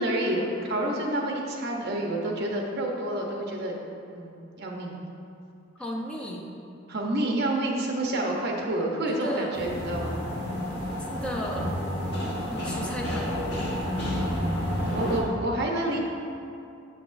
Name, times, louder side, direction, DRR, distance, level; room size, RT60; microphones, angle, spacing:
voice 1, 0.0-3.7 4.1-5.0 6.9-10.2 12.8-13.0 14.9-16.0, right 1 dB, 55° right, 0 dB, 0.8 m, -28 dB
voice 2, 5.8-6.5 9.1-9.6 11.0-11.8 12.5-13.3, equal, 5° left, -3 dB, 0.6 m, -34 dB
sound 1, 9.5-15.2, equal, 55° left, 1.4 m, -30 dB
7.3 x 5.8 x 2.6 m, 2.6 s
head